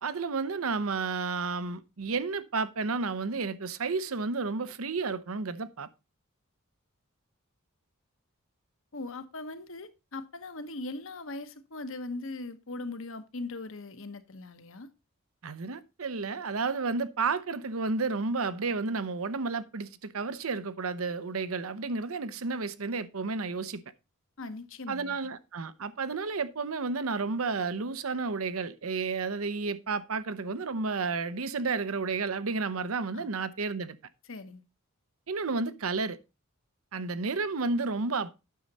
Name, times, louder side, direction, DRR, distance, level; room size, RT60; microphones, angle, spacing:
voice 1, 0.0-5.9 15.4-23.8 24.9-34.0 35.3-36.2 36.9-38.3, right 4 dB, 75° right, 0.8 m, -31 dB
voice 2, 8.9-14.9 24.4-25.2 33.1-33.3 34.2-34.6, left 2 dB, 65° left, 1.0 m, -40 dB
9.4 x 6.4 x 4.1 m
head